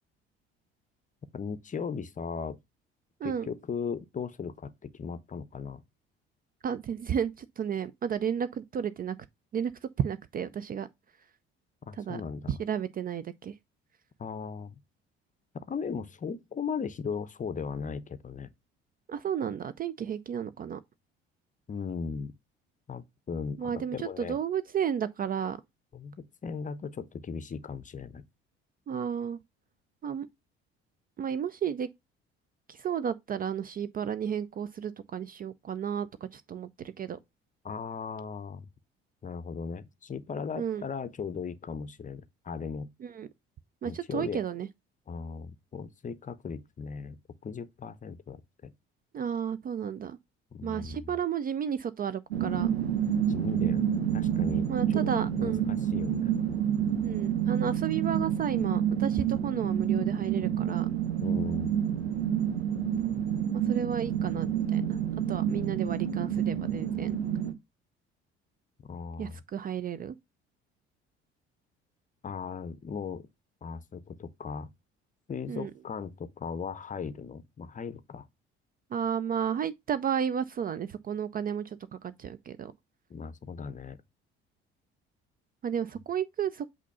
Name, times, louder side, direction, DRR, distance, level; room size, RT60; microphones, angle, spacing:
voice 1, 1.3-2.6 3.2-5.8 11.9-12.6 14.2-14.7 15.5-18.5 21.7-22.3 22.9-24.4 25.9-28.2 37.6-38.7 39.2-42.9 43.8-44.4 45.1-47.2 47.4-48.7 50.5-51.1 53.3-56.4 61.2-61.7 68.9-69.4 72.2-73.3 73.6-74.7 75.3-78.3 83.1-84.0, left 5 dB, 25° left, 0.7 m, -37 dB
voice 2, 6.6-9.2 9.5-9.7 10.0-10.9 12.0-12.2 12.5-13.5 19.1-20.8 23.6-25.6 28.9-29.4 30.0-30.3 31.2-31.9 32.7-37.2 40.6-40.8 43.0-43.3 43.8-44.7 49.1-50.2 50.6-52.7 54.7-55.6 57.0-60.9 63.5-65.0 65.3-67.2 69.2-70.1 75.5-75.7 78.9-82.7 85.6-86.7, right 8 dB, 30° right, 0.4 m, -32 dB
sound 1, 52.3-67.5, right 9 dB, 80° right, 0.7 m, -28 dB
8.2 x 2.8 x 5.4 m
figure-of-eight pair, 50°, 32 cm